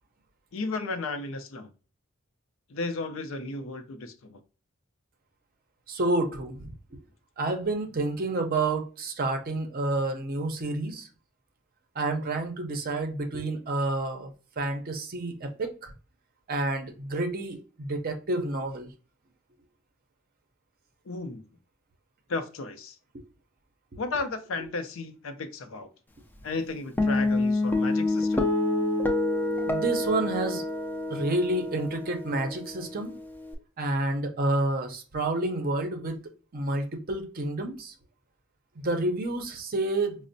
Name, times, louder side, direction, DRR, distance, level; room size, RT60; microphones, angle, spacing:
voice 1, 0.5-1.7 2.7-4.4 21.1-21.4 22.3-23.0 24.0-25.9 26.4-28.5, left 3 dB, 65° left, 0.5 m, -34 dB
voice 2, 5.9-6.7 7.4-11.1 12.0-15.9 16.5-18.9 29.7-30.6 31.1-33.1 33.8-36.2 36.5-37.9 38.8-40.3, right 2 dB, 45° right, 0.6 m, -29 dB
Guitar, 27.0-33.5, left 2 dB, 10° left, 0.4 m, -27 dB
5.1 x 2.0 x 2.6 m
head